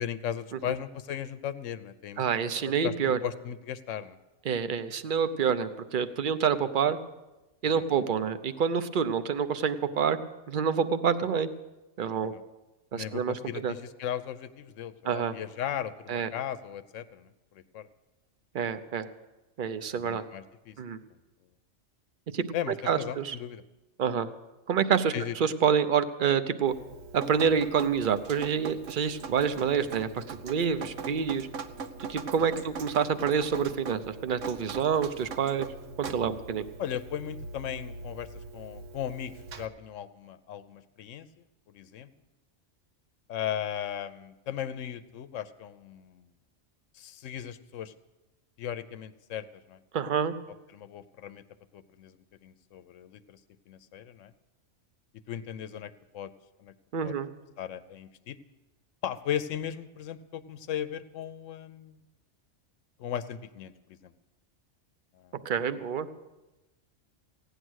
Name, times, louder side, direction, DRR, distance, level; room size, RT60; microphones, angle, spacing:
voice 1, 0.0-2.2 2.8-4.2 7.7-7.8 12.3-12.4 12.9-17.3 17.5-17.9 19.9-20.7 22.5-23.6 25.1-25.3 36.8-41.3 41.7-42.1 43.3-46.2 47.0-47.9 48.6-49.8 50.7-51.4 51.7-52.2 52.4-53.4 53.7-54.3 55.3-56.3 56.6-56.7 57.0-57.1 57.6-58.4 59.0-62.0 63.0-64.1 65.2-65.3, left 10 dB, 90° left, 13 dB, 1.0 m, -37 dB
voice 2, 2.2-3.2 4.4-7.0 7.6-10.2 10.5-11.5 12.0-12.3 12.9-13.7 15.0-15.4 16.1-16.3 18.5-19.1 19.6-20.2 20.8-21.0 22.3-22.4 22.9-23.4 24.0-24.3 24.7-26.7 27.1-31.5 32.0-35.7 36.0-36.7 49.9-50.3 56.9-57.3 65.4-66.1, right 7 dB, 50° right, 11 dB, 0.8 m, -27 dB
Drip, 26.7-39.7, right 4 dB, 85° right, 1.2 m, -41 dB
16.5 x 10.0 x 6.3 m, 1.1 s
omnidirectional pair, 1.3 m